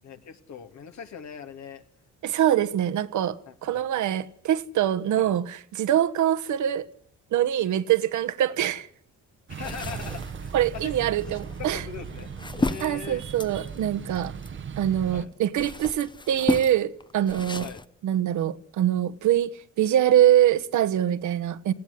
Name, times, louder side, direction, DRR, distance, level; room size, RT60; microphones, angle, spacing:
voice 1, 0.0-1.8 3.5-3.8 5.2-5.3 9.5-10.9 11.3-13.2 15.1-15.3 17.6-17.9, left 7 dB, 65° left, 2.6 m, -41 dB
voice 2, 2.2-6.9 7.3-8.9 10.5-11.8 12.8-14.3 14.8-17.7 18.0-21.7, right 11 dB, 75° right, 1.3 m, -24 dB
sound 1, 9.5-15.3, right 6 dB, 40° right, 1.0 m, -38 dB
sound 2, 9.6-14.8 15.3-17.8, left 2 dB, 15° left, 0.8 m, -33 dB
19.0 x 15.5 x 9.8 m
cardioid pair, 90°, 30 cm